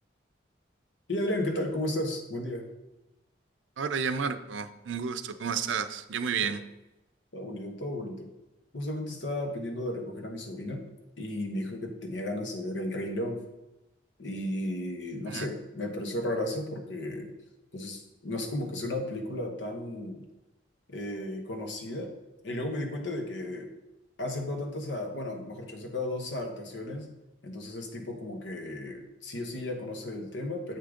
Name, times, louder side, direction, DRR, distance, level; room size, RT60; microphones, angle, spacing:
voice 1, 1.1-2.6 6.4-6.5 7.3-8.3 8.7-10.8 11.2-13.4 14.2-17.3 17.7-20.2 20.9-22.1 22.4-23.7 24.2-27.1 27.4-30.8, left 1 dB, 80° left, 3 dB, 1.1 m, -34 dB
voice 2, 3.8-6.6 15.3-15.5, right 6 dB, 85° right, 10 dB, 0.5 m, -31 dB
7.5 x 3.7 x 5.1 m, 0.98 s
head